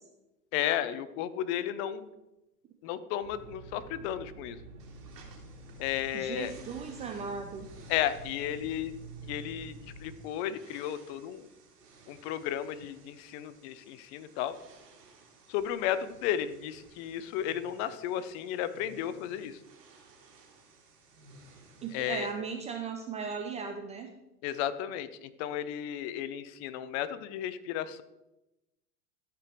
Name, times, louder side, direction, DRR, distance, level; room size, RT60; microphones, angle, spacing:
voice 1, 0.5-2.1 2.8-4.6 5.8-6.5 7.9-8.9 9.2-11.5 12.1-14.5 15.5-19.6 21.9-22.3 24.4-28.0, left 11 dB, 45° left, 14 dB, 0.7 m, -34 dB
sound 1, 3.2-10.2, right 3 dB, 65° right, 2.7 m, -48 dB
sound 2, 4.8-22.3, right 3 dB, 80° right, 3.1 m, -57 dB
voice 2, 6.1-7.7 21.8-24.1, right 5 dB, 15° right, 4 dB, 0.3 m, -37 dB
13.0 x 5.2 x 4.5 m, 0.96 s
hypercardioid pair, 115°, 47 cm